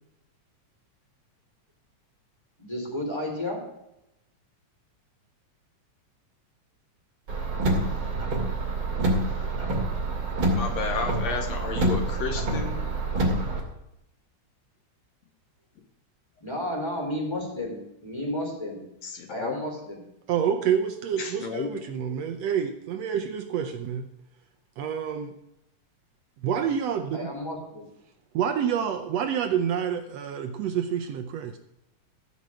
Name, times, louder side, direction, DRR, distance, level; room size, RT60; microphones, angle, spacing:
voice 1, 2.6-3.6 16.4-18.8 19.3-20.0 27.1-27.8, left 1 dB, 10° left, -1 dB, 3.5 m, -32 dB
Car, 7.3-13.6, right 2 dB, 45° right, 3.1 m, -27 dB
voice 2, 10.5-12.8 19.0-19.7 21.2-21.8, left 5 dB, 70° left, 5 dB, 2.2 m, -32 dB
voice 3, 20.3-24.1 24.8-25.3 26.4-27.3 28.3-31.6, right 8 dB, 70° right, 7 dB, 1.7 m, -28 dB
15.0 x 5.5 x 7.7 m, 0.86 s
omnidirectional pair, 3.3 m